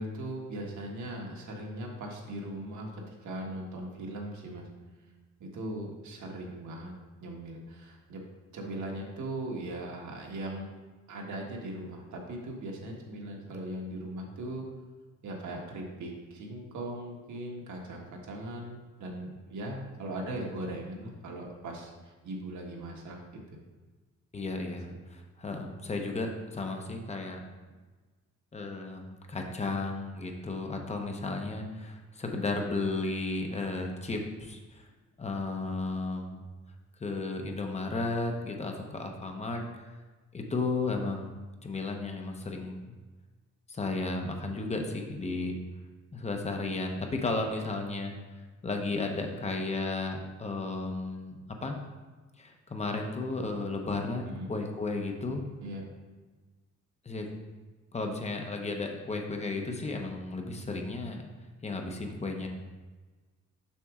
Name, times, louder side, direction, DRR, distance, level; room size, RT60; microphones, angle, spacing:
voice 1, 0.0-4.7 5.4-6.9 7.2-8.2 8.5-10.7 11.1-14.6 15.2-23.2 23.5-23.6 24.7-24.8 54.3-54.5 55.6-55.8, right 1 dB, 70° right, 0 dB, 1.5 m, -39 dB
voice 2, 24.3-27.4 28.5-34.9 35.2-36.4 37.0-39.9 40.3-41.3 41.6-43.0 43.7-45.5 46.1-48.1 48.6-51.8 52.4-55.4 57.0-57.3 57.9-61.3 61.6-62.5, left 3 dB, 20° left, 3 dB, 0.8 m, -34 dB
7.1 x 6.0 x 3.6 m, 1.3 s
cardioid pair, 140°, 30 cm